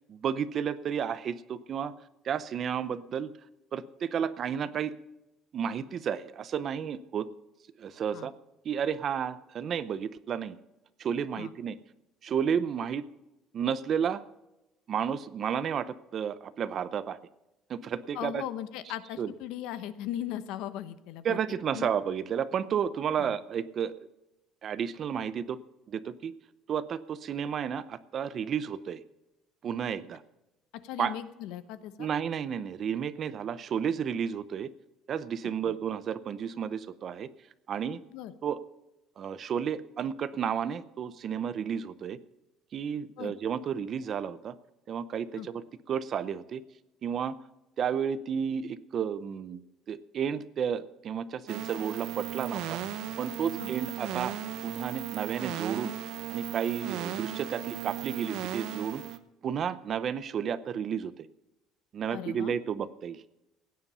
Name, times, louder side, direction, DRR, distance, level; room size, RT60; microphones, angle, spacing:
voice 1, 0.1-1.9 2.2-3.3 3.7-4.9 5.5-7.3 7.8-8.3 8.6-10.6 11.0-11.8 12.2-13.0 13.5-14.2 14.9-17.2 17.7-18.4 19.2-19.3 21.2-24.1 24.6-25.6 25.9-26.3 26.7-29.0 29.6-30.2 31.0-31.2 32.0-34.7 35.1-37.3 37.7-38.0 38.4-38.6 39.2-42.2 42.7-44.5 44.9-46.6 47.0-47.4 47.8-49.6 49.9-52.8 53.2-54.3 54.6-55.9 56.3-59.0 59.4-61.1 61.9-63.2, right 8 dB, 35° right, 15 dB, 0.6 m, -32 dB
voice 2, 18.1-21.4 21.7-21.9 23.2-23.3 30.8-32.1 35.6-35.7 38.1-38.3 43.2-43.3 45.4-45.5 53.6-53.7 62.1-62.6, left 12 dB, 70° left, 13 dB, 1.0 m, -38 dB
sound 1, 51.5-59.2, right 12 dB, 65° right, 1.0 m, -36 dB
16.0 x 9.9 x 5.5 m, 0.94 s
cardioid pair, 175°, 0 cm